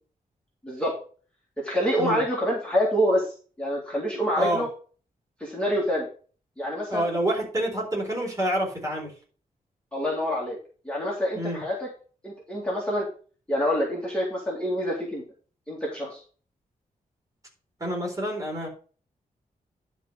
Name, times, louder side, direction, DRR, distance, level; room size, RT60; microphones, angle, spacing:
voice 1, 0.6-1.0 1.6-4.7 5.4-6.1 6.6-7.1 9.9-10.6 10.9-11.9 12.2-13.1 13.5-15.2 15.7-16.2, equal, 5° left, -5 dB, 2.1 m, -26 dB
voice 2, 6.9-9.1 11.3-11.6 17.8-18.7, right 1 dB, 25° right, -2 dB, 4.0 m, -27 dB
11.0 x 3.7 x 6.3 m, 0.40 s
wide cardioid pair, 175°, 15 cm